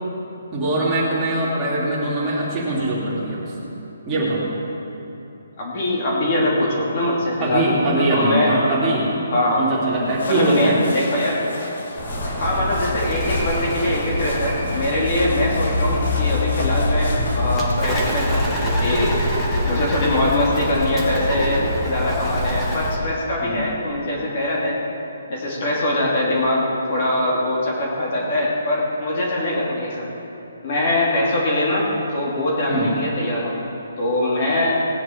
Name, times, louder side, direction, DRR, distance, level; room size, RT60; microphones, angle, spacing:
voice 1, 0.5-3.6 4.1-4.5 7.4-9.1 9.5-10.8 23.4-23.7 32.7-32.9, right 2 dB, 10° right, -8 dB, 3.0 m, -22 dB
voice 2, 5.6-8.5 9.3-9.6 10.3-11.4 11.9-12.0 12.4-19.1 19.6-24.8 25.3-30.1 30.6-33.6 34.0-34.7, left 1 dB, 40° left, -4 dB, 2.7 m, -22 dB
sound 1, 10.0-17.6, left 2 dB, 65° left, 2.5 m, -33 dB
Bird, 12.0-23.0, left 1 dB, 10° left, 1.8 m, -24 dB
19.0 x 9.8 x 4.6 m, 2.9 s
hypercardioid pair, 165°, 0 cm